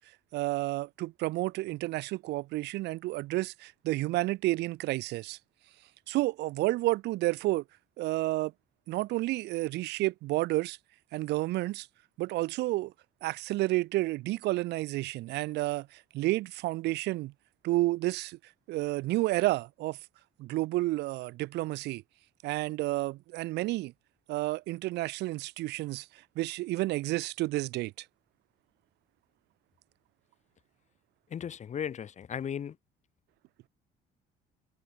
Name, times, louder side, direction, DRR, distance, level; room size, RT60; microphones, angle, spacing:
voice 1, 0.3-5.4 6.1-7.6 8.0-8.5 8.9-10.8 11.1-11.9 12.2-12.9 13.2-17.3 17.6-18.4 18.7-20.0 20.4-22.0 22.4-23.9 24.3-26.1 26.3-28.0, right 19 dB, 85° right, 1.5 m, -30 dB
voice 2, 31.3-32.8, left 8 dB, 45° left, 2.1 m, -36 dB
cardioid pair, 110°, 17 cm